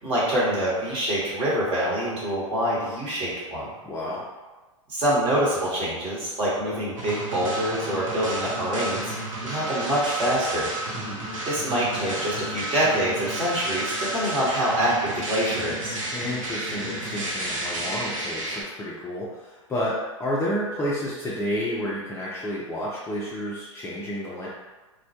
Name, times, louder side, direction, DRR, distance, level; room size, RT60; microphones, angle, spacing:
voice 1, 0.0-3.7 4.9-10.7 11.4-16.0, right 1 dB, 35° right, -7 dB, 1.1 m, -25 dB
voice 2, 3.8-4.2 10.9-11.3 16.1-24.5, equal, 15° left, -7 dB, 0.4 m, -30 dB
sound 1, 7.0-18.6, right 1 dB, 80° right, 0.7 m, -31 dB
2.1 x 2.1 x 2.7 m, 1.2 s
hypercardioid pair, 105°, 17 cm